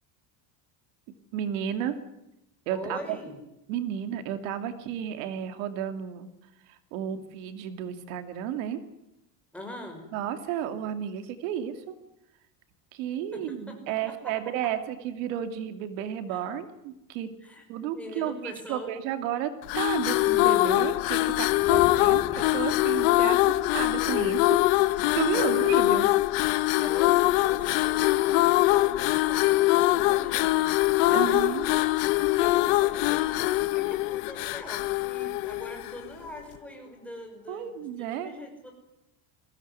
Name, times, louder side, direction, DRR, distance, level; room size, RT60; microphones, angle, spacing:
voice 1, 1.3-2.0 2.7-3.2 3.7-6.3 6.7-8.8 10.1-11.9 12.9-17.3 17.7-24.6 24.9-26.1 31.1-31.7 37.5-38.3, right 10 dB, 85° right, 9 dB, 2.7 m, -32 dB
voice 2, 2.7-3.4 9.5-10.0 13.3-13.8 14.1-14.3 16.3-16.4 17.4-18.9 25.2-25.7 26.8-30.7 31.0-31.6 32.3-38.7, left 1 dB, 5° left, 2 dB, 6.1 m, -42 dB
sound 1, 19.6-36.1, left 18 dB, 85° left, 1.3 m, -23 dB
Thunder, 21.3-23.6, left 6 dB, 65° left, 3.7 m, -42 dB
22.0 x 16.5 x 9.7 m, 0.89 s
cardioid pair, 160°, 39 cm